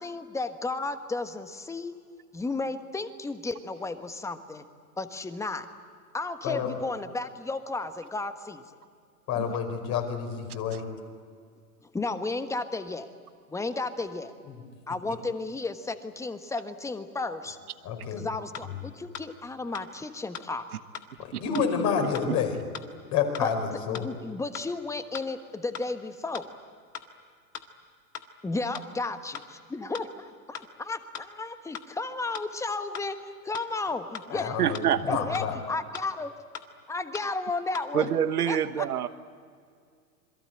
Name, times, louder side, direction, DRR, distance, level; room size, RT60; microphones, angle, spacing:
voice 1, 0.0-1.9 2.3-4.6 5.0-5.7 6.1-8.6 11.8-13.1 13.5-14.3 14.9-17.6 18.1-20.6 23.4-23.5 23.9-26.5 28.4-33.2 33.4-34.6 35.1-36.3 36.9-38.1 38.5-39.1, left 3 dB, 5° left, 10 dB, 1.3 m, -33 dB
voice 2, 9.3-10.8 14.5-14.6 17.8-18.2 21.2-22.6 23.1-24.1 34.3-35.5, left 7 dB, 35° left, 5 dB, 5.0 m, -29 dB
sound 1, 18.5-18.7 19.1-19.3 19.7-19.9 20.3-20.5 20.9-21.1 21.5-21.7 22.1-22.3 22.7-22.9 23.3-23.5 23.9-24.1 24.5-24.7 25.1-25.3 25.7-25.9 26.3-26.5 26.9-27.1 27.5-27.7 28.1-28.3 28.7-28.9 29.3-29.5 29.9-30.1 30.5-30.7 31.1-31.3 31.7-31.9 32.3-32.5 32.9-33.1 33.5-33.7 34.1-34.3 34.7-34.9 35.3-35.5 35.9-36.1 36.5-36.7 37.1-37.3 37.7-37.9, left 7 dB, 80° left, 1.9 m, -39 dB
voice 3, 22.0-22.4 34.6-35.2 37.9-39.1, right 9 dB, 70° right, 12 dB, 1.3 m, -27 dB
27.0 x 22.5 x 8.9 m, 2.2 s
hypercardioid pair, 110°, 46 cm